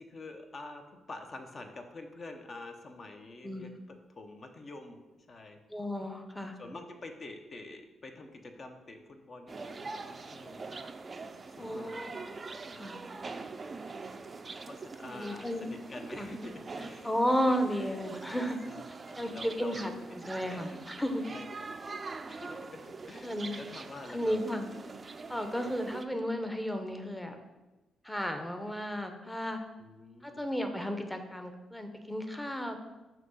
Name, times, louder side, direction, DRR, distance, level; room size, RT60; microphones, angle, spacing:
voice 1, 0.0-5.6 6.6-10.7 11.6-12.0 12.6-12.8 14.6-18.0 18.6-20.7 21.0-21.7 22.3-24.4 29.8-30.4, left 2 dB, 45° left, 5 dB, 0.8 m, -47 dB
voice 2, 5.7-6.5 11.6-12.4 12.7-13.0 15.1-15.7 16.2-16.3 17.0-18.6 19.2-21.2 23.2-23.6 24.1-24.7 25.3-27.4 28.0-29.6 30.2-32.8, equal, 5° left, 6 dB, 0.8 m, -33 dB
sound 1, 9.5-26.1, right 4 dB, 35° right, 0.4 m, -44 dB
5.9 x 2.9 x 5.5 m, 1.1 s
cardioid pair, 75°, 0 cm